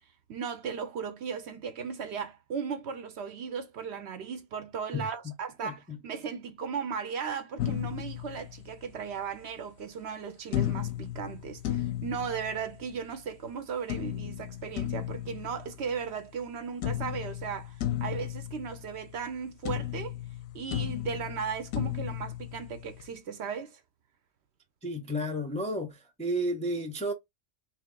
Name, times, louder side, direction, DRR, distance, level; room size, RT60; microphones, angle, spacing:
voice 1, 0.3-20.1 20.5-23.8, right 6 dB, 65° right, 0.8 m, -36 dB
sound 1, 7.6-9.1 10.5-13.1 13.9-16.5 16.8-19.4 19.6-23.1, left 12 dB, 90° left, 1.0 m, -35 dB
voice 2, 24.8-27.1, equal, 10° left, 0.3 m, -32 dB
3.4 x 3.1 x 3.8 m
omnidirectional pair, 1.4 m